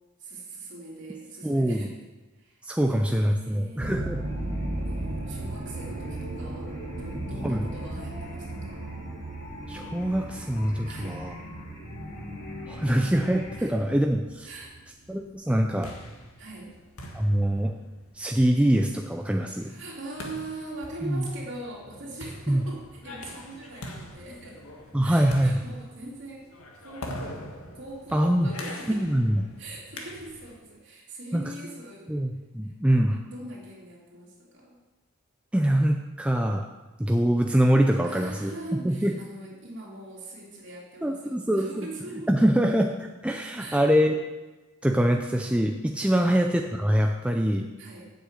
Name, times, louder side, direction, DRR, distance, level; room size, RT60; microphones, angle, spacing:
voice 1, 0.2-1.9 2.4-4.0 4.9-8.8 10.9-11.2 13.6-13.7 14.4-14.7 16.4-16.7 19.5-24.6 25.0-26.5 26.8-27.4 27.7-29.1 29.6-32.1 32.6-32.7 33.3-34.8 38.0-42.5 43.6-43.8 46.1-46.3 47.8-48.1, right 2 dB, 55° right, -4 dB, 3.0 m, -42 dB
voice 2, 1.4-1.9 2.6-4.2 7.4-7.6 9.7-11.3 12.7-14.5 15.1-15.9 17.1-17.7 18.2-19.7 21.0-21.2 22.5-22.6 24.9-25.5 28.1-28.5 28.9-29.4 31.3-31.4 32.1-33.2 35.5-36.6 37.0-38.5 38.8-39.1 41.0-41.9 42.3-44.2 44.8-47.7, equal, 5° right, 2 dB, 0.4 m, -24 dB
sound 1, 3.8-16.1 16.6-17.0 17.6-17.7 18.0-18.1, right 2 dB, 35° right, 1.0 m, -37 dB
sound 2, 4.1-13.6, equal, 45° left, 2.0 m, -41 dB
sound 3, 15.5-30.6, left 1 dB, 80° left, 1.6 m, -43 dB
7.9 x 6.4 x 8.1 m, 1.1 s
head